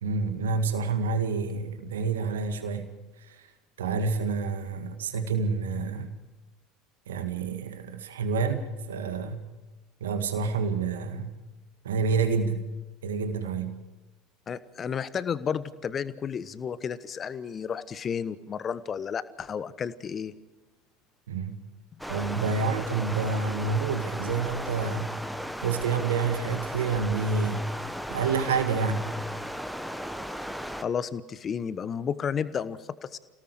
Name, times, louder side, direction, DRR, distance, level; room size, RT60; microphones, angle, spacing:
voice 1, 0.0-2.9 3.3-3.5 3.8-6.2 7.1-9.5 10.0-11.4 11.8-12.7 13.0-13.8 21.3-21.6 22.1-25.2 25.6-27.7 28.1-29.2, right 4 dB, 70° right, 8 dB, 1.9 m, -28 dB
voice 2, 14.5-20.3 30.8-33.2, left 7 dB, 30° left, 15 dB, 1.1 m, -32 dB
Stream, 22.0-30.8, equal, ahead, 1.5 m, -36 dB
28.5 x 18.5 x 5.0 m, 1.1 s
figure-of-eight pair, 70°, 0 cm